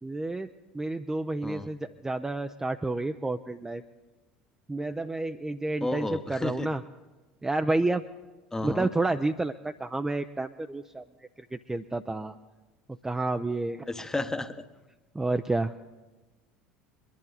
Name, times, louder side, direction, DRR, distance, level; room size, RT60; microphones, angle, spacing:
voice 1, 0.0-3.8 4.7-6.8 7.4-8.0 8.6-12.4 13.0-13.9 15.1-15.7, right 2 dB, 10° right, 7 dB, 0.5 m, -30 dB
voice 2, 5.8-6.7 8.5-8.9 13.9-14.6, left 2 dB, 10° left, 11 dB, 0.9 m, -32 dB
23.0 x 11.0 x 4.0 m, 1.2 s
figure-of-eight pair, 70°, 5 cm